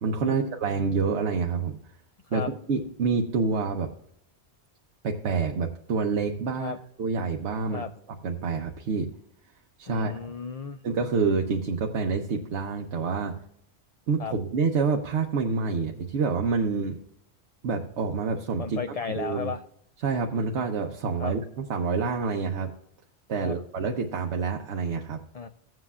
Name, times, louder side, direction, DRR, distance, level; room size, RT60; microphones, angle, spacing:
voice 1, 0.0-1.8 2.3-3.9 5.0-7.8 8.2-9.1 9.8-10.1 10.8-13.3 14.1-17.0 17.6-19.5 20.0-22.7 23.3-25.2, right 4 dB, 90° right, 2 dB, 1.1 m, -27 dB
voice 2, 9.9-10.8 14.2-14.3 18.6-19.6 21.2-21.3 23.4-23.6 25.3-25.5, left 6 dB, 55° left, 9 dB, 0.4 m, -34 dB
16.5 x 7.7 x 2.4 m, 0.73 s
omnidirectional pair, 1.1 m